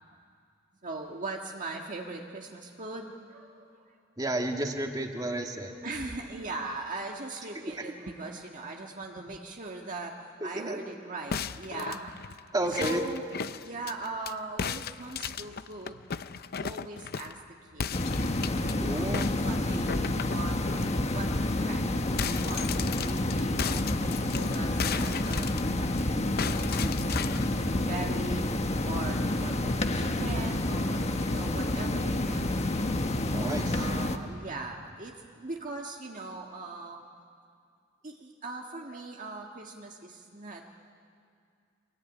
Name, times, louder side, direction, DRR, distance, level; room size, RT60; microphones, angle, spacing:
voice 1, 0.8-4.0 5.7-10.1 10.4-12.2 12.7-13.3 13.5-16.2 16.5-17.9 18.8-19.1 19.4-21.3 21.6-22.7 23.0-32.7 33.6-37.0 38.0-40.6, right 3 dB, 40° right, 1 dB, 1.6 m, -40 dB
voice 2, 4.2-5.7 10.6-10.8 12.5-13.0 18.8-19.5 33.3-33.8, right 1 dB, 20° right, 2 dB, 2.2 m, -31 dB
sound 1, 11.3-14.3 14.6-17.4 17.8-18.7 19.1-20.9 21.3-21.4 21.7-26.0 26.4-27.5, left 7 dB, 50° left, 0.6 m, -36 dB
sound 2, 17.9-34.2, left 1 dB, 35° left, 1.3 m, -29 dB
25.0 x 22.5 x 9.8 m, 2.3 s
head